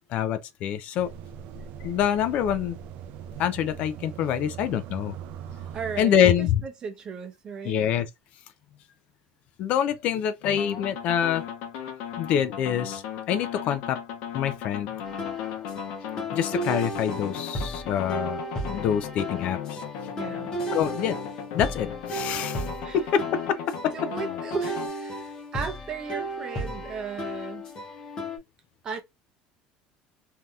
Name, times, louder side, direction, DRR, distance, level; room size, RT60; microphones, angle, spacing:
voice 1, 0.1-1.1 1.8-2.8 3.4-5.1 6.0-6.6 7.6-8.1 9.6-11.4 12.2-14.0 14.3-14.9 16.3-18.4 18.7-19.8 20.7-21.2 21.5-22.7 22.9-23.9, left 9 dB, 50° left, 0.4 m, -26 dB
sound 1, 1.0-6.0, right 8 dB, 55° right, 0.3 m, -40 dB
voice 2, 5.7-7.8 20.1-20.5 22.8-23.0 23.9-27.7 28.8-29.0, right 5 dB, 30° right, 0.7 m, -36 dB
sound 2, 10.4-24.9, left 7 dB, 75° left, 0.8 m, -37 dB
sound 3, 15.0-28.4, equal, 25° left, 1.0 m, -34 dB
3.3 x 2.7 x 2.3 m
cardioid pair, 165°, 3 cm